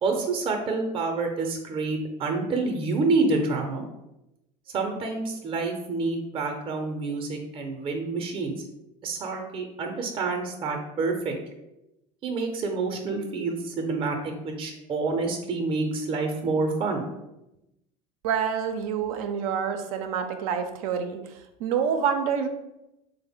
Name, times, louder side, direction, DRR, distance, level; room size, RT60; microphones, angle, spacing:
voice 1, 0.0-3.9 4.7-8.5 9.0-11.3 12.2-17.0, right 3 dB, 30° right, 3 dB, 0.5 m, -28 dB
voice 2, 18.2-21.2 21.6-22.5, right 7 dB, 80° right, 7 dB, 0.5 m, -27 dB
3.4 x 2.1 x 3.5 m, 0.91 s
supercardioid pair, 110°, 18 cm